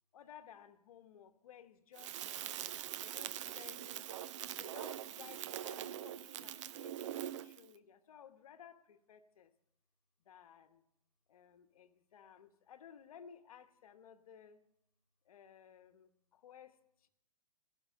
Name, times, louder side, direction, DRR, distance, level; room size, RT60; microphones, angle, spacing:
voice 1, 0.1-2.6 3.0-4.1 4.6-9.5 10.2-10.8 11.3-14.6 15.2-17.1, left 8 dB, 65° left, 9 dB, 1.1 m, -57 dB
Crackle, 2.0-7.7, right 11 dB, 50° right, 0.6 m, -43 dB
15.5 x 6.2 x 7.4 m, 0.79 s
hypercardioid pair, 125°, 19 cm